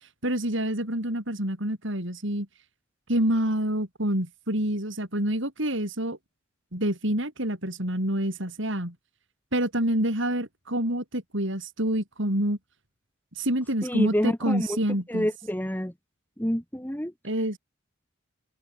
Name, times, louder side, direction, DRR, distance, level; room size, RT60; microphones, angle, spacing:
voice 1, 0.2-2.5 3.1-6.2 6.7-8.9 9.5-12.6 13.4-15.3 17.2-17.6, right 1 dB, 65° right, 7.5 m, -27 dB
voice 2, 13.8-14.8 15.1-15.9 16.4-17.1, equal, 10° left, 4.3 m, -28 dB
head